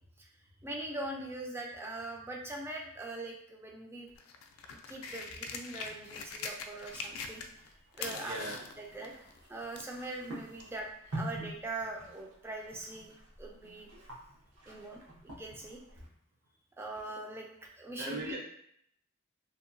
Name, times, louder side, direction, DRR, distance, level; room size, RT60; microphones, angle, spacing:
voice 1, 0.6-4.1 4.9-8.4 8.8-9.1 9.5-13.1 13.4-13.9 14.7-16.0 16.8-17.5 17.7-18.4, right 2 dB, 10° right, 0 dB, 0.4 m, -42 dB
sound 1, 4.1-7.7 7.9-10.0 10.8-10.9, left 5 dB, 75° left, 0.3 m, -42 dB
sound 2, 6.2-16.1, right 1 dB, 85° right, 0.9 m, -48 dB
voice 2, 8.2-8.6 18.0-18.4, right 2 dB, 55° right, -1 dB, 0.6 m, -38 dB
2.8 x 2.2 x 2.5 m, 0.69 s
head